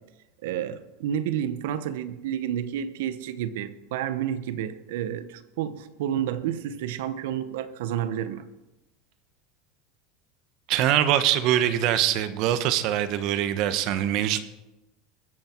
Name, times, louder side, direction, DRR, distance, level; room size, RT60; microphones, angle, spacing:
voice 1, 0.4-8.4, right 10 dB, 80° right, 1.0 m, -30 dB
voice 2, 10.7-14.4, right 11 dB, 55° right, 1.1 m, -23 dB
21.5 x 8.1 x 4.6 m
supercardioid pair, 125°, 0 cm